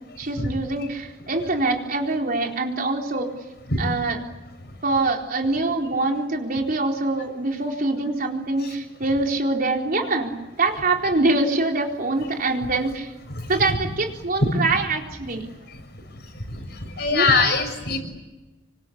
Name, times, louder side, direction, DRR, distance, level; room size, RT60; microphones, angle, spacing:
voice 1, 0.2-3.3 3.8-4.2 4.8-13.1 13.5-15.5 17.1-17.3, right 2 dB, 50° right, 1 dB, 4.1 m, -24 dB
voice 2, 17.0-18.0, left 3 dB, 65° left, 6 dB, 6.4 m, -21 dB
27.0 x 24.5 x 8.6 m, 1.1 s
head